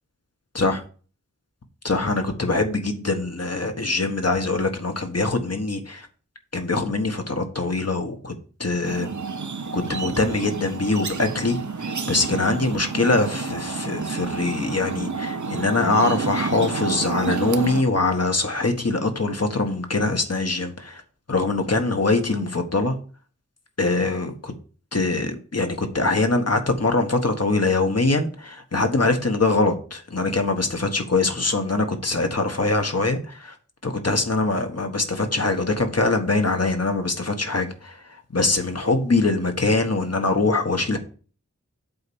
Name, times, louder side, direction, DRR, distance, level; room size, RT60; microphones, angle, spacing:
voice 1, 1.8-6.1 6.5-8.3 8.6-9.1 9.7-11.6 12.1-21.0 21.3-23.0 23.8-24.5 24.9-33.5 33.8-37.9 38.3-41.0, left 3 dB, 55° left, 1.5 m, -23 dB
sound 1, 8.8-17.8, right 4 dB, 70° right, 0.9 m, -29 dB
7.8 x 4.5 x 7.1 m
wide cardioid pair, 55°, 31 cm